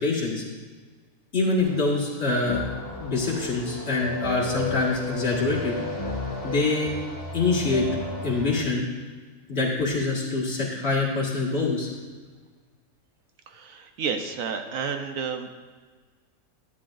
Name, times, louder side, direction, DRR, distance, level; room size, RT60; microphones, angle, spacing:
voice 1, 0.0-0.4 1.3-2.6 3.0-5.8 6.4-6.9 7.3-7.9 8.2-8.8 9.5-11.9, left 3 dB, 45° left, -5 dB, 2.1 m, -25 dB
sound 1, 1.6-8.6, left 1 dB, 25° left, 1.3 m, -34 dB
voice 2, 13.5-15.6, right 6 dB, 70° right, 6 dB, 1.1 m, -31 dB
11.0 x 11.0 x 2.5 m, 1.5 s
omnidirectional pair, 1.5 m